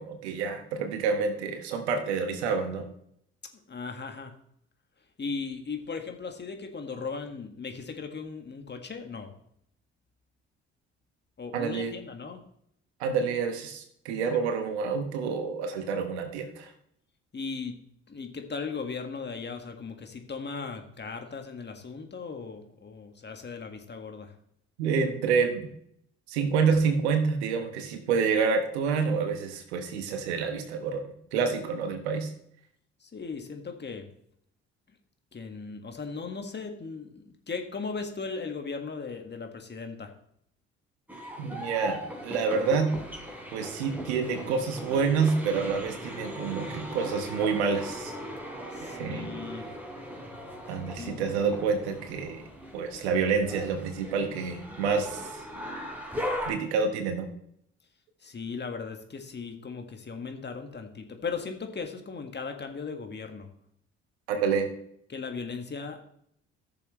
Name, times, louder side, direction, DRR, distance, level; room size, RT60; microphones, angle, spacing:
voice 1, 0.0-2.9 11.5-11.9 13.0-16.7 24.8-25.7 26.3-32.3 41.4-43.0 43.5-48.1 48.8-49.3 50.7-52.4 52.7-55.4 56.4-57.3 64.3-64.7, right 5 dB, 85° right, 7 dB, 1.2 m, -28 dB
voice 2, 3.7-4.3 5.2-9.3 11.4-12.4 14.3-14.4 17.3-17.8 18.1-24.3 33.0-34.1 35.3-40.1 48.7-49.7 51.0-51.2 58.2-63.5 65.1-66.0, left 5 dB, 35° left, 5 dB, 1.7 m, -37 dB
sound 1, 41.1-56.5, equal, 5° right, 3.4 m, -39 dB
14.5 x 6.9 x 3.2 m, 0.72 s
hypercardioid pair, 50°, 32 cm